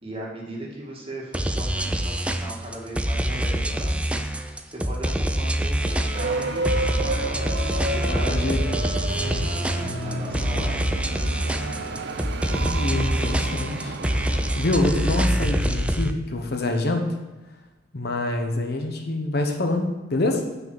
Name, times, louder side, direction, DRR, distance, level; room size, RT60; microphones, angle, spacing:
voice 1, 0.0-8.6 9.9-10.9, right 1 dB, 30° right, -2 dB, 1.8 m, -38 dB
sound 1, 1.3-16.1, right 1 dB, 5° right, 0.4 m, -25 dB
sound 2, 5.7-12.8, equal, 85° left, 2.6 m, -40 dB
sound 3, 6.1-15.4, right 3 dB, 65° right, 0.6 m, -32 dB
voice 2, 8.1-8.8 9.2-10.7 12.5-17.1 17.9-20.4, left 2 dB, 60° left, 4 dB, 1.0 m, -27 dB
6.0 x 5.7 x 7.1 m, 1.1 s
head